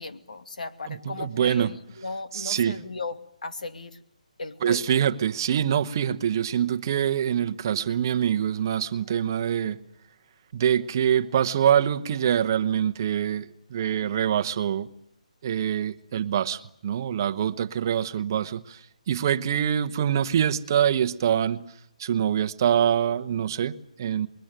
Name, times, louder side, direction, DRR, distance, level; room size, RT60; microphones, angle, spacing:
voice 1, 0.0-4.0 4.4-5.1, left 3 dB, 80° left, 2.5 m, -36 dB
voice 2, 0.9-1.7 2.3-2.8 4.6-9.8 10.5-14.9 15.4-18.8 19.1-21.6 22.0-24.3, right 9 dB, 30° right, 1.0 m, -25 dB
25.0 x 22.0 x 9.0 m
hypercardioid pair, 175°, 4 cm